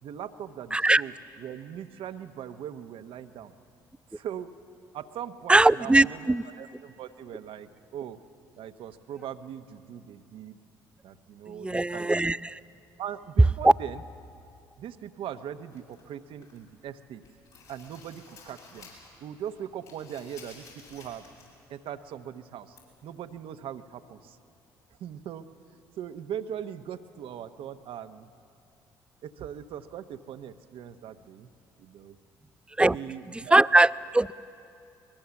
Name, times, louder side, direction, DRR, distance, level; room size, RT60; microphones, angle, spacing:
voice 1, 0.0-3.5 4.1-4.5 4.9-8.2 8.6-10.6 11.0-12.4 13.0-14.0 14.8-17.2 17.7-18.9 19.2-20.6 20.9-21.2 21.7-22.8 23.0-24.4 25.0-28.3 29.2-31.5 31.8-32.2 32.9-33.5, right 9 dB, 65° right, 9 dB, 1.0 m, -40 dB
voice 2, 0.7-1.0 5.5-6.4 11.6-12.6 32.8-33.0 33.5-34.3, right 2 dB, 10° right, 17 dB, 0.4 m, -21 dB
sound 1, 15.7-16.7 17.1-19.2 19.4-21.6 21.9-22.0 22.8-22.9, left 4 dB, 80° left, 6.7 m, -52 dB
23.5 x 21.5 x 7.1 m, 2.6 s
hypercardioid pair, 55°, 10 cm